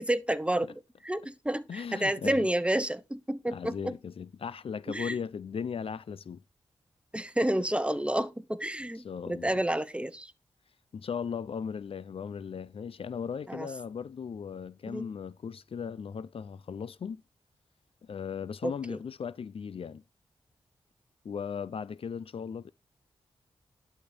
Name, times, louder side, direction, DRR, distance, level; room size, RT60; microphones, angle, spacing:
voice 1, 0.0-3.9 4.9-5.1 7.1-10.3 13.5-13.7 14.9-15.1 18.6-19.0, right 1 dB, 10° right, 1.1 m, -30 dB
voice 2, 1.7-2.5 3.5-6.4 9.0-9.6 10.9-17.2 18.0-20.0 21.2-22.7, left 6 dB, 65° left, 0.6 m, -37 dB
11.5 x 4.3 x 5.2 m
cardioid pair, 50°, 10 cm